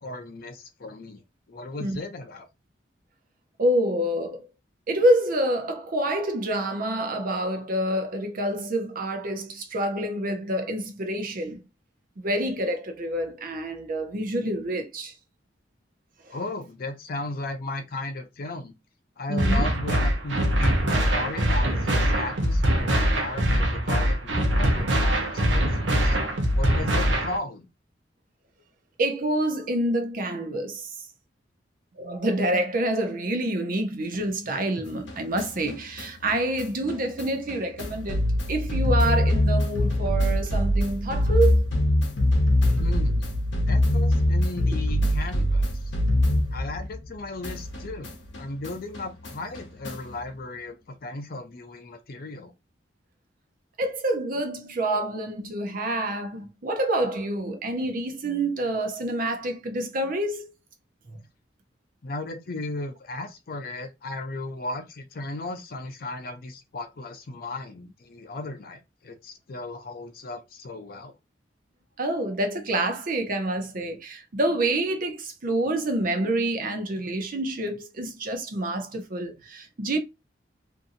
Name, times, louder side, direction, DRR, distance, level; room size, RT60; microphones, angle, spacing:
voice 1, 0.0-1.2 1.5-2.5 16.3-18.7 19.2-26.2 26.5-27.7 42.8-43.3 43.7-45.7 46.5-48.1 48.4-52.5 62.0-71.1, left 2 dB, 55° left, 0.5 m, -36 dB
voice 2, 3.6-4.5 4.9-11.6 12.2-15.1 16.3-16.4 19.3-19.7 29.0-31.1 32.0-38.2 38.5-41.7 53.8-60.5 61.1-61.2 72.0-80.0, right 1 dB, 50° right, 0.6 m, -27 dB
sound 1, 19.4-27.4, equal, 85° right, 0.8 m, -23 dB
sound 2, 34.9-47.1 47.4-50.2, left 1 dB, 80° left, 0.8 m, -24 dB
2.6 x 2.6 x 2.6 m
head